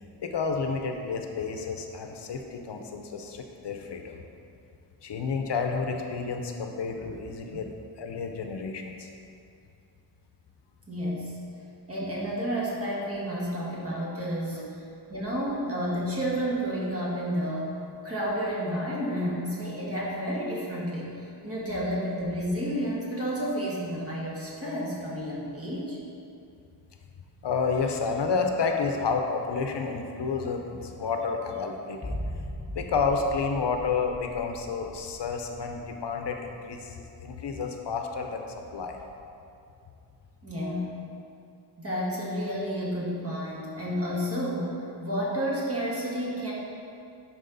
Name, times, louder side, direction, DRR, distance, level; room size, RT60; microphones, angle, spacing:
voice 1, 0.2-4.2 5.0-7.7 8.0-9.1 14.5-14.7 27.4-32.2 32.7-38.4 38.7-39.0, left 5 dB, 75° left, 4 dB, 0.7 m, -30 dB
voice 2, 10.9-11.4 11.9-14.7 15.1-17.8 18.0-26.0 40.4-40.9 41.8-46.5, equal, 35° right, -6 dB, 1.8 m, -31 dB
sound 1, 32.0-36.2 36.5-36.6, equal, 25° left, 1.0 m, -38 dB
11.0 x 4.4 x 4.0 m, 2.6 s
wide cardioid pair, 125°, 42 cm